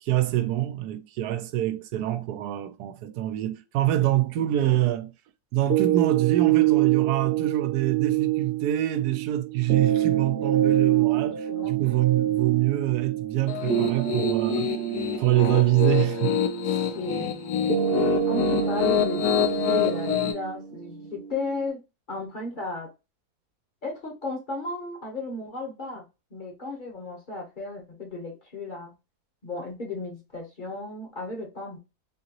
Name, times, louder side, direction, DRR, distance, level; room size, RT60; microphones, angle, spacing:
voice 1, 0.0-5.1 5.5-14.7 15.2-16.4 16.6-16.9, right 14 dB, 85° right, 1.1 m, -25 dB
sound 1, 5.7-21.7, right 12 dB, 55° right, 0.8 m, -26 dB
voice 2, 11.3-11.8 16.9-17.3 18.3-21.8 22.1-22.9 23.8-26.0 26.3-28.9 29.4-31.8, left 2 dB, 40° left, 0.9 m, -34 dB
Piano, 13.5-20.3, left 10 dB, 80° left, 1.2 m, -27 dB
3.7 x 2.8 x 2.9 m
omnidirectional pair, 1.6 m